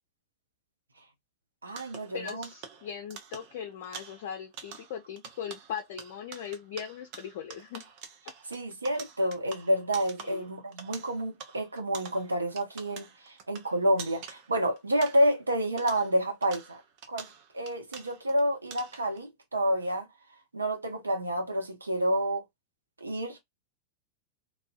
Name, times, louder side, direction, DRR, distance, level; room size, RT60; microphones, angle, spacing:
voice 1, 1.6-2.5 8.5-16.8 17.1-17.3 17.5-20.1 20.5-22.4 23.0-23.4, equal, 80° right, 0.7 m, -29 dB
sound 1, 1.7-15.5 15.8-18.4 18.7-19.2, right 6 dB, 45° right, 0.6 m, -47 dB
voice 2, 2.1-7.9 10.2-10.5, left 8 dB, 50° left, 0.4 m, -39 dB
2.6 x 2.0 x 2.4 m
figure-of-eight pair, 90°, 0 cm